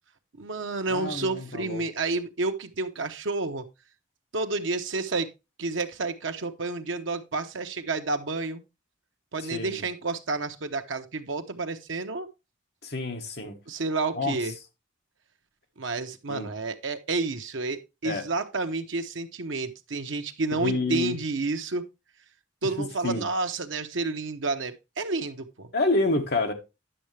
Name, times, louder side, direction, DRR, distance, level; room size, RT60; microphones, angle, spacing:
voice 1, 0.4-3.7 4.3-5.3 5.6-8.6 9.3-12.3 13.4-14.5 15.8-21.8 22.6-25.7, right 3 dB, 75° right, 0.9 m, -30 dB
voice 2, 0.9-1.8 9.4-9.8 12.8-13.5 14.1-14.4 16.3-16.5 18.0-18.2 20.5-21.2 22.8-23.2 25.7-26.5, left 2 dB, 55° left, 1.5 m, -28 dB
10.0 x 6.5 x 3.3 m
head